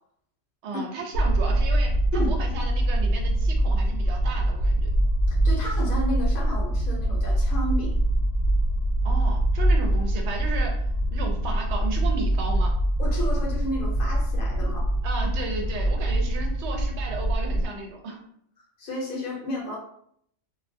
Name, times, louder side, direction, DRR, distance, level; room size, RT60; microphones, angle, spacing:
voice 1, 0.6-4.9 9.0-12.7 15.0-18.2, right 3 dB, 70° right, 2 dB, 0.9 m, -34 dB
sound 1, 1.1-17.7, right 1 dB, 80° left, 1.0 m, -24 dB
voice 2, 5.3-7.9 13.0-14.9 18.8-19.8, left 1 dB, 50° left, -2 dB, 0.8 m, -32 dB
2.3 x 2.2 x 2.6 m, 0.67 s
omnidirectional pair, 1.3 m